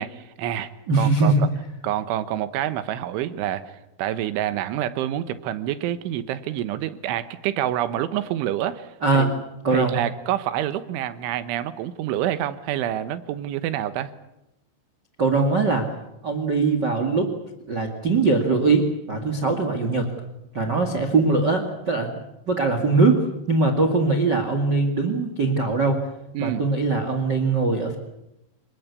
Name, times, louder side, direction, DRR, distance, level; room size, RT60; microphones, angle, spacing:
voice 1, 0.0-0.7 1.0-1.3 1.8-9.4 9.7-14.1 26.4-26.6, right 12 dB, 85° right, 12 dB, 3.6 m, -27 dB
voice 2, 0.9-1.4 9.0-9.3 9.6-9.9 15.2-15.9 16.2-17.3 17.7-20.1 20.5-22.1 22.5-26.0 26.4-28.0, right 3 dB, 40° right, 7 dB, 1.5 m, -21 dB
27.5 x 19.5 x 8.3 m, 0.90 s
omnidirectional pair, 5.4 m